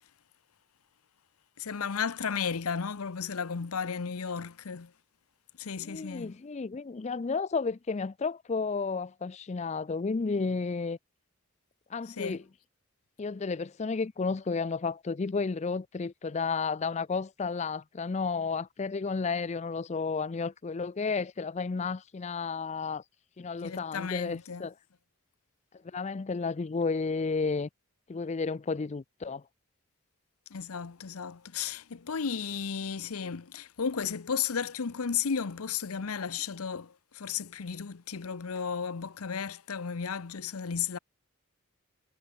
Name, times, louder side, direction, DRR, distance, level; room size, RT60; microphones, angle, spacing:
voice 1, 1.6-4.9 5.6-6.3 12.1-12.4 23.6-24.6 30.5-41.0, left 6 dB, 80° left, 0.7 m, -34 dB
voice 2, 5.8-11.0 11.9-12.4 13.2-23.0 23.4-24.7 25.9-27.7 28.1-29.4, left 4 dB, 30° left, 0.4 m, -32 dB
head